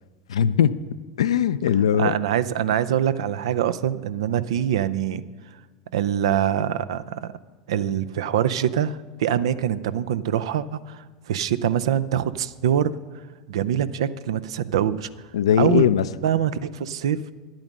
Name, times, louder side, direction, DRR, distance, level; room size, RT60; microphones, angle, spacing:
voice 1, 0.3-0.7 1.2-2.2 15.3-16.0, left 9 dB, 80° left, 14 dB, 0.4 m, -19 dB
voice 2, 2.0-5.2 5.9-7.3 7.7-13.0 13.5-15.1 15.6-17.2, right 10 dB, 75° right, 14 dB, 0.5 m, -24 dB
11.0 x 8.9 x 6.2 m, 1.4 s
hypercardioid pair, 85°, 3 cm